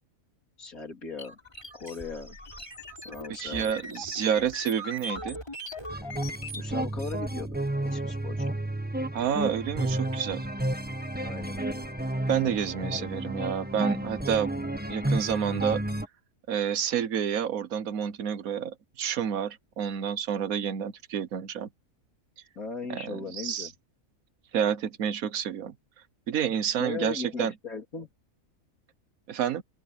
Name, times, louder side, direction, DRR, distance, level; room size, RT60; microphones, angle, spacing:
voice 1, 0.6-1.4 1.7-2.4 3.0-3.7 6.5-8.6 10.0-10.4 11.2-11.9 12.8-13.1 22.6-23.7 26.8-28.1, left 4 dB, 85° left, 4.0 m, -38 dB
sound 1, 1.2-6.7, left 1 dB, 20° left, 4.7 m, -40 dB
voice 2, 3.3-5.4 9.1-10.5 12.3-15.8 16.5-21.7 22.9-23.7 24.5-25.7 26.3-27.5 29.3-29.6, right 8 dB, 75° right, 1.4 m, -29 dB
sound 2, 5.9-16.1, right 1 dB, 5° right, 1.3 m, -31 dB
open air
omnidirectional pair, 1.5 m